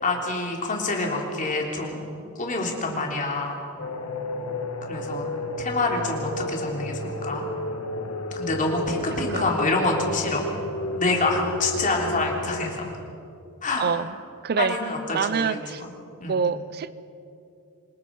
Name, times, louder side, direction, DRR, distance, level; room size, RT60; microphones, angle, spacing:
voice 1, 0.0-2.0 2.4-3.6 4.9-5.2 5.6-7.5 8.4-10.5 11.0-12.9 13.6-13.8 14.6-15.9 16.2-16.4, left 2 dB, 35° left, 0 dB, 3.5 m, -27 dB
sound 1, 3.8-12.7, left 1 dB, 80° left, 1.6 m, -32 dB
voice 2, 9.3-9.8 13.8-14.1 14.4-14.8 15.1-15.8 16.3-16.9, right 6 dB, 45° right, 15 dB, 0.5 m, -26 dB
26.5 x 21.0 x 5.4 m, 2.7 s
head